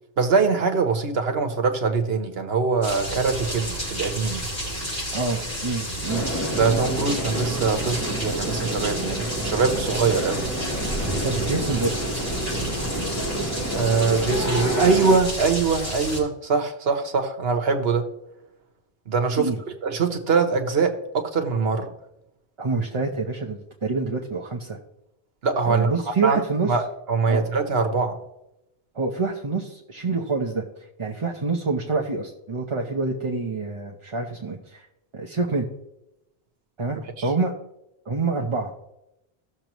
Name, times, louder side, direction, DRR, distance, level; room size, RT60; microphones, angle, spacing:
voice 1, 0.2-4.5 6.6-10.5 13.7-18.1 19.1-19.5 19.8-21.9 25.4-25.9 26.2-26.4 26.7-28.2 37.2-37.3, right 4 dB, 75° right, 6 dB, 1.3 m, -23 dB
sound 1, 2.8-16.2, equal, 55° left, 4.6 m, -31 dB
voice 2, 5.1-6.2 11.2-12.0 19.3-19.6 22.6-24.8 25.7-26.7 27.3-27.4 28.9-34.9 35.1-35.7 36.8-37.5 38.1-38.7, right 3 dB, 35° right, 0 dB, 0.8 m, -27 dB
sound 2, 6.1-15.2, right 1 dB, 15° left, 1.3 m, -29 dB
16.5 x 6.7 x 3.0 m, 0.87 s
omnidirectional pair, 1.0 m